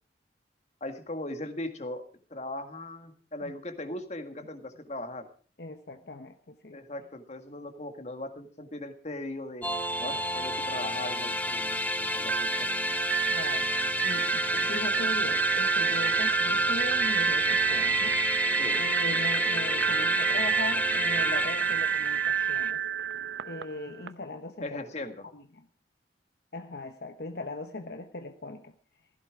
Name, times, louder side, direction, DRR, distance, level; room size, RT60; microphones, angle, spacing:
voice 1, 0.8-2.0 2.3-5.3 6.7-9.7 10.0-12.7 18.6-18.8 24.6-25.2, left 1 dB, 40° left, 7 dB, 1.8 m, -38 dB
voice 2, 5.6-6.8 13.3-13.7 14.0-18.1 18.8-22.8 23.4-24.7 25.3-25.6 26.5-28.7, left 2 dB, 60° left, 7 dB, 1.0 m, -39 dB
sound 1, 9.6-22.7, left 1 dB, 10° left, 1.1 m, -31 dB
sound 2, 12.2-24.1, right 8 dB, 85° right, 0.8 m, -28 dB
15.5 x 15.5 x 4.8 m, 0.41 s
head